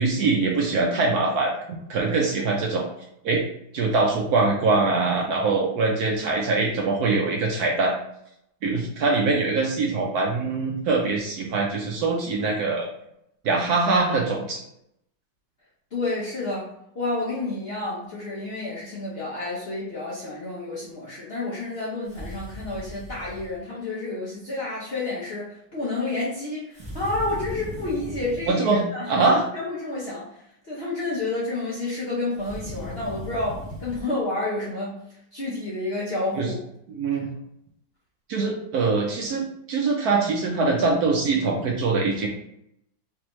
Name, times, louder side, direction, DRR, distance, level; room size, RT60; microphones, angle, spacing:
voice 1, 0.0-2.8 3.2-3.4 3.7-7.9 8.6-12.9 13.4-14.6 28.5-29.4 36.4-36.5 36.9-37.3 38.3-39.4 39.7-42.3, right 3 dB, 70° right, -1 dB, 1.0 m, -23 dB
voice 2, 15.9-29.3 29.5-35.0 35.3-36.6, left 2 dB, 50° left, -7 dB, 0.7 m, -30 dB
sound 1, 22.0-23.6 26.7-28.5 32.4-34.0, equal, 5° right, 0.9 m, -37 dB
3.4 x 3.4 x 3.0 m, 0.76 s
omnidirectional pair, 2.0 m